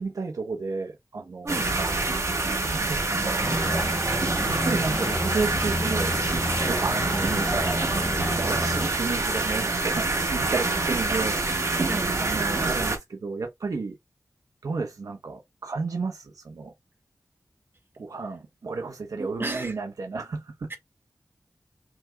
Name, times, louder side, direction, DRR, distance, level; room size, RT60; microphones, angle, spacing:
voice 1, 0.0-1.6 2.1-3.5 4.5-6.2 6.6-7.9 8.2-11.9 12.2-14.0 14.6-16.7 18.0-20.7, right 4 dB, 80° right, 0.9 m, -32 dB
sound 1, 1.5-13.0, right 3 dB, 60° right, 1.9 m, -26 dB
sound 2, 3.4-8.9, left 1 dB, 15° left, 0.9 m, -31 dB
voice 2, 8.2-8.5 11.9-12.2 19.2-19.7 20.7-20.8, right 2 dB, 40° right, 1.9 m, -34 dB
6.0 x 3.5 x 2.3 m
wide cardioid pair, 55°, 6 cm